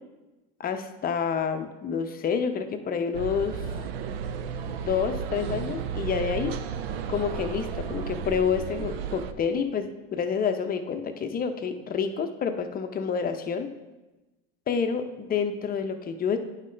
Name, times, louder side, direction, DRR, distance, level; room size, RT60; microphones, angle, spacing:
voice 1, 0.6-3.6 4.7-6.5 7.1-13.7 14.7-16.4, left 6 dB, 30° left, 7 dB, 0.6 m, -28 dB
sound 1, 3.1-9.3, right 7 dB, 90° right, 0.6 m, -33 dB
9.7 x 5.3 x 3.3 m, 1.1 s
supercardioid pair, 105°, 29 cm